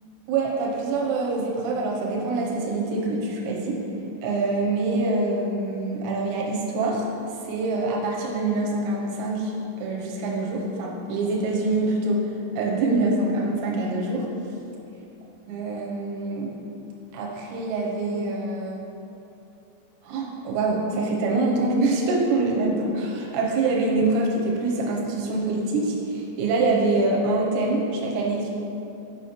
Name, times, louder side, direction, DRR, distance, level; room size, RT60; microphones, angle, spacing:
voice 1, 0.3-3.8 4.2-7.1 7.4-9.5 9.8-14.3 15.5-16.5 17.1-18.8 20.0-28.5, right 2 dB, 80° right, -2 dB, 2.9 m, -25 dB
7.1 x 6.0 x 3.1 m, 2.8 s
omnidirectional pair, 5.5 m